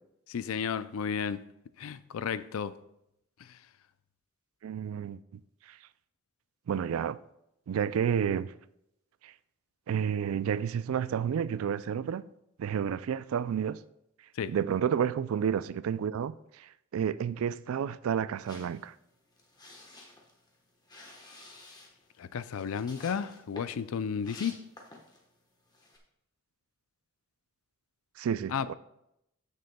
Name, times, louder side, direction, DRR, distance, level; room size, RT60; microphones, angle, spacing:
voice 1, 0.3-1.4 1.8-2.8 3.4-3.6 14.4-14.5 22.2-24.6 28.5-28.7, left 7 dB, 85° left, 0.4 m, -33 dB
voice 2, 4.6-5.4 5.7-5.8 6.7-7.2 7.7-8.5 9.2-9.3 9.9-12.3 12.6-13.8 14.5-18.9 28.2-28.7, right 8 dB, 85° right, 0.3 m, -30 dB
sound 1, 18.4-25.3 25.7-26.0, left 2 dB, 20° left, 1.1 m, -51 dB
14.0 x 6.6 x 2.2 m
head